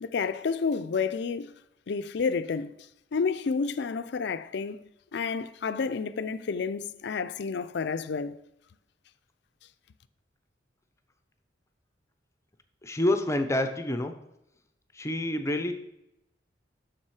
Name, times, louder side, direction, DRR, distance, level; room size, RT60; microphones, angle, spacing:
voice 1, 0.0-1.5 1.9-2.7 3.1-4.8 5.1-8.4, left 5 dB, 65° left, 0.4 m, -30 dB
voice 2, 12.8-14.1 15.0-15.7, left 1 dB, 15° left, 0.6 m, -27 dB
7.3 x 6.4 x 4.8 m
head